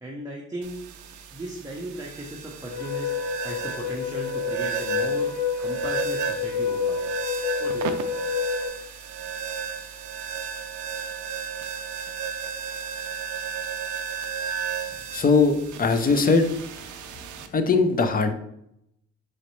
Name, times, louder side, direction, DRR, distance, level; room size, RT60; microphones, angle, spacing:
voice 1, 0.0-0.8 1.3-7.0 7.6-8.1, right 1 dB, 10° right, -3 dB, 0.7 m, -37 dB
sound 1, 0.6-17.5, right 7 dB, 75° right, 0.5 m, -34 dB
sound 2, 2.7-8.7, left 6 dB, 70° left, 0.7 m, -28 dB
voice 2, 15.1-16.4 17.5-18.3, left 4 dB, 30° left, 8 dB, 0.5 m, -20 dB
3.9 x 3.2 x 3.0 m, 0.75 s
cardioid pair, 90°, 30 cm